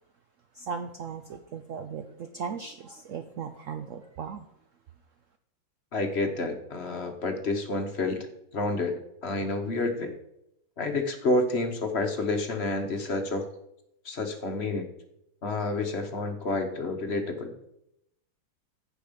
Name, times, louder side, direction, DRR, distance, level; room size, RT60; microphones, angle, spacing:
voice 1, 0.5-4.5, right 6 dB, 85° right, 7 dB, 0.6 m, -37 dB
voice 2, 5.9-8.3 8.5-8.9 9.2-10.1 10.8-13.5 14.0-14.9 15.4-17.5, left 2 dB, 45° left, 5 dB, 1.0 m, -29 dB
15.0 x 5.3 x 5.1 m, 0.82 s
omnidirectional pair, 2.1 m